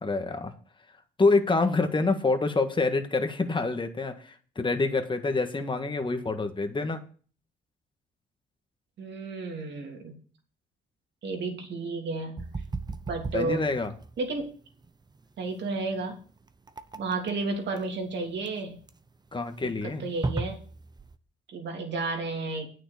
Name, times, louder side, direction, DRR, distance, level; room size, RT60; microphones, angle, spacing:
voice 1, 0.0-0.5 1.2-7.0 13.3-13.9 19.3-20.1, left 3 dB, 25° left, 7 dB, 1.7 m, -26 dB
voice 2, 9.0-10.1 11.2-12.4 13.1-13.6 14.2-14.5 15.4-16.2 16.9-18.8 19.6-19.7 20.0-20.6 21.5-22.7, right 3 dB, 60° right, 2 dB, 3.2 m, -32 dB
sound 1, 12.4-21.2, right 3 dB, 20° right, 0.8 m, -37 dB
9.1 x 6.6 x 6.9 m, 0.42 s
cardioid pair, 90°, 20 cm